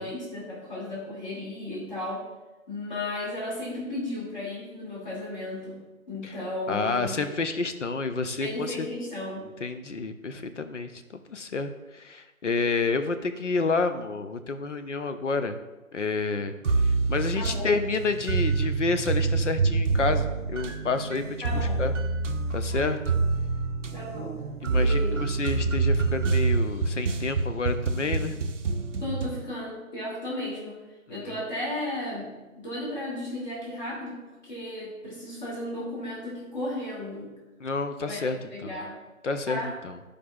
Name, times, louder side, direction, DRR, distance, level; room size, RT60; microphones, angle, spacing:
voice 1, 0.0-2.2 2.7-5.8 6.1-7.2 8.4-9.4 17.3-17.7 21.4-21.8 23.9-24.4 24.7-25.3 29.0-30.8 31.1-32.3 32.6-34.2 34.4-37.3 38.1-38.2 38.5-39.0 39.5-39.7, left 1 dB, 30° left, -6 dB, 2.3 m, -34 dB
voice 2, 6.7-8.9 9.6-10.9 11.3-15.6 15.9-16.5 16.8-21.2 21.5-21.9 22.5-23.0 24.6-28.3 31.1-31.2 37.6-38.7 39.2-40.0, left 4 dB, 60° left, 8 dB, 0.6 m, -29 dB
sound 1, 16.6-29.4, right 4 dB, 60° right, 0.6 m, -27 dB
11.0 x 5.0 x 2.4 m, 1.1 s
figure-of-eight pair, 160°, 42 cm